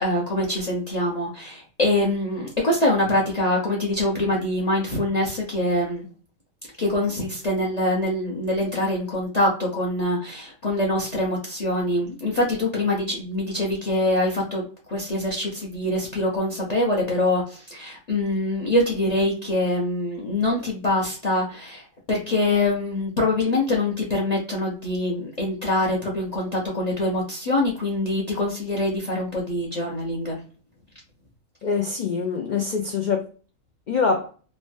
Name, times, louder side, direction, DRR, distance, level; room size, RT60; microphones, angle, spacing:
voice 1, 0.0-6.1 6.8-14.6 14.9-30.4, left 1 dB, 40° left, 0.7 m, -24 dB
voice 2, 31.6-33.3 33.9-34.3, left 5 dB, 75° left, 0.4 m, -24 dB
3.2 x 2.1 x 2.4 m
omnidirectional pair, 1.4 m